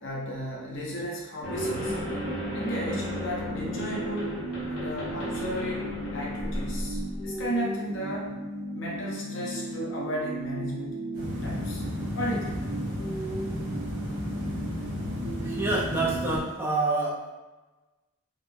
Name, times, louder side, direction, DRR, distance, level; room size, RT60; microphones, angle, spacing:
voice 1, 0.0-2.0 2.5-4.4 4.6-8.3 8.7-11.0 11.4-11.9 12.1-12.6, equal, 55° left, -4 dB, 0.8 m, -34 dB
sound 1, 1.4-7.4, equal, 85° left, 1.0 m, -35 dB
sound 2, 1.5-16.4, right 1 dB, 75° right, 0.6 m, -35 dB
sound 3, 11.1-16.4, equal, 40° right, 1.0 m, -34 dB
voice 2, 15.4-17.3, right 2 dB, 10° right, -4 dB, 0.5 m, -27 dB
3.6 x 2.0 x 3.5 m, 1.2 s
head